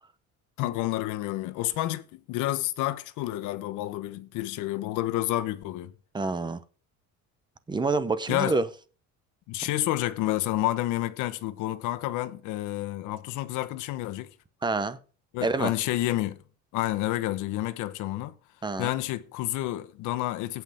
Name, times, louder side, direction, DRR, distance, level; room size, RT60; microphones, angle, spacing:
voice 1, 0.6-5.9 8.3-8.6 9.5-14.3 15.3-16.4 16.7-18.3 18.8-20.6, left 15 dB, 85° left, 1.2 m, -29 dB
voice 2, 6.1-6.6 7.7-8.7 14.6-15.0 15.4-15.7 18.6-18.9, right 3 dB, 15° right, 0.8 m, -27 dB
17.0 x 6.0 x 3.6 m
cardioid pair, 155°, 30 cm